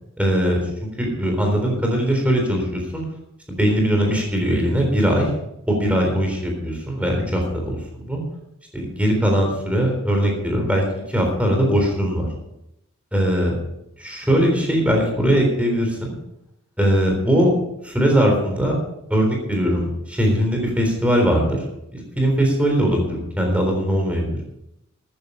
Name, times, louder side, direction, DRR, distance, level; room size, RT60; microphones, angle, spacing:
voice 1, 0.2-0.6 1.0-3.0 3.5-5.3 5.7-8.2 8.7-12.3 13.1-13.6 14.0-16.2 16.8-17.5 17.8-18.8 19.1-21.6 21.9-24.4, equal, 5° right, 1 dB, 3.7 m, -20 dB
14.0 x 9.7 x 5.6 m, 0.83 s
head